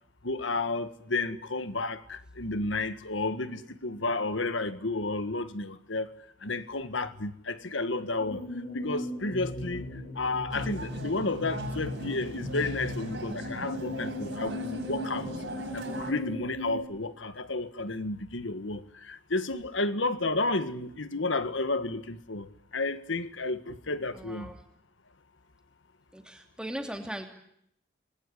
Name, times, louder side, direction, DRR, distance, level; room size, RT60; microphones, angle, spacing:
voice 1, 0.2-6.1 6.4-8.4 8.7-9.8 10.1-15.3 15.7-24.5, left 3 dB, 80° left, 12 dB, 1.6 m, -32 dB
sound 1, 8.2-16.8, left 1 dB, 55° left, 4.7 m, -38 dB
sound 2, 10.5-16.1, right 1 dB, 65° right, 7.6 m, -39 dB
voice 2, 24.1-24.6 26.1-27.3, right 1 dB, 5° right, 4 dB, 2.9 m, -38 dB
28.5 x 20.5 x 9.9 m, 0.73 s
head